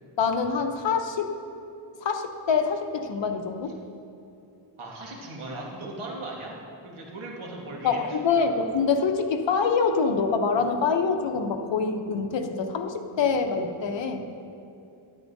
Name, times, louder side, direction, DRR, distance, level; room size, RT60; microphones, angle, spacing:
voice 1, 0.2-1.3 2.0-3.8 7.8-14.2, left 5 dB, 60° left, 5 dB, 0.8 m, -25 dB
voice 2, 4.8-6.5 6.8-8.5, right 2 dB, 75° right, -2 dB, 1.6 m, -38 dB
12.5 x 11.5 x 2.7 m, 2.7 s
wide cardioid pair, 145°, 50 cm